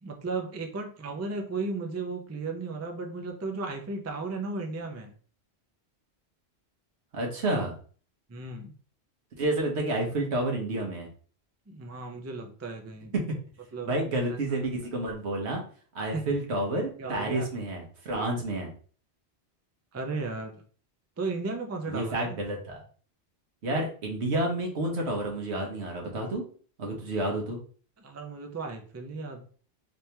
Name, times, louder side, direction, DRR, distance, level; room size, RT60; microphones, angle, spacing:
voice 1, 0.0-5.1 8.3-8.7 11.7-13.1 13.7-13.9 14.5-14.6 16.1-16.4 17.0-17.5 19.9-20.5 21.2-22.4 28.0-29.5, right 3 dB, 25° right, 3 dB, 0.4 m, -35 dB
voice 2, 7.1-7.7 9.4-11.1 13.1-13.2 13.8-15.6 15.9-18.7 21.9-22.8 23.6-26.4 26.8-27.6, right 1 dB, 80° right, 1 dB, 1.3 m, -30 dB
3.3 x 2.9 x 3.3 m, 0.42 s
omnidirectional pair, 1.1 m